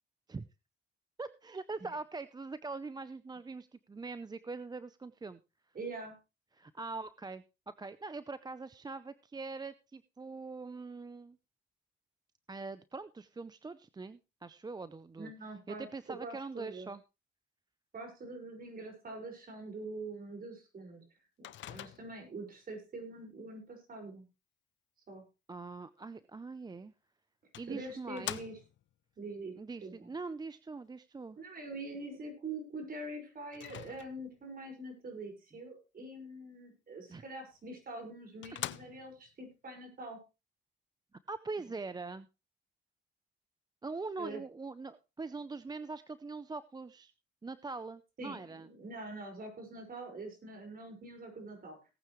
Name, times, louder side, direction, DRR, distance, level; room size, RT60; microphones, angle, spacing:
voice 1, 1.2-5.4 6.5-11.4 12.5-15.3 15.7-17.0 25.5-26.9 27.5-28.4 29.6-31.4 37.1-37.2 41.3-42.3 43.8-47.1 47.4-48.7, right 3 dB, 20° right, 14 dB, 0.6 m, -43 dB
voice 2, 5.7-6.2 15.2-16.9 17.9-21.0 21.4-24.2 25.1-25.2 27.7-28.6 29.2-29.5 29.8-30.1 31.4-40.2 44.2-44.4 48.2-51.8, right 2 dB, 45° right, 4 dB, 5.7 m, -44 dB
Microwave oven, 21.4-22.3 26.7-26.8 27.5-28.9 33.5-34.4 37.5-37.6 38.1-38.2 38.4-39.3, left 13 dB, 70° left, 0.6 m, -44 dB
18.5 x 8.9 x 3.2 m, 0.28 s
cardioid pair, 90°, 20 cm